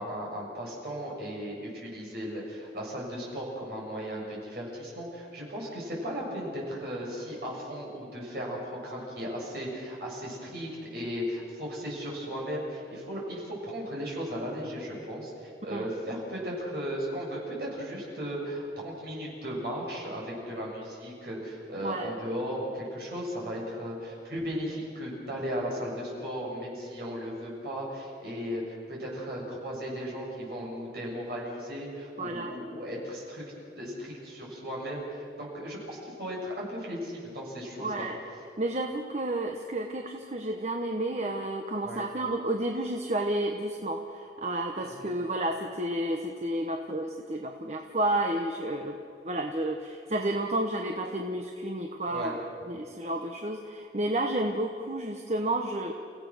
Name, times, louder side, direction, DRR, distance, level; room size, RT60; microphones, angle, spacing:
voice 1, 0.0-33.4 33.8-38.0 41.8-42.0 44.8-45.1 52.1-52.3, equal, 60° right, -4 dB, 7.4 m, -36 dB
voice 2, 32.2-32.5 37.8-38.2 38.6-49.0 49.2-55.9, right 1 dB, 40° right, 3 dB, 1.1 m, -31 dB
30.0 x 16.5 x 6.4 m, 2.4 s
head